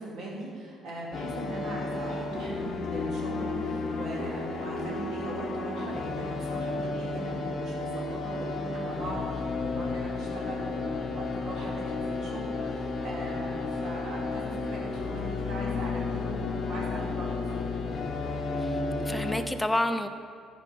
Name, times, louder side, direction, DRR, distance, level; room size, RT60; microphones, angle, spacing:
voice 1, 0.0-17.8, right 1 dB, 55° right, -4 dB, 2.7 m, -39 dB
sound 1, 1.1-19.4, left 3 dB, 35° left, 0.9 m, -32 dB
voice 2, 18.6-20.1, left 1 dB, 5° left, 8 dB, 0.4 m, -29 dB
14.0 x 5.6 x 5.3 m, 2.3 s
cardioid pair, 180°, 0 cm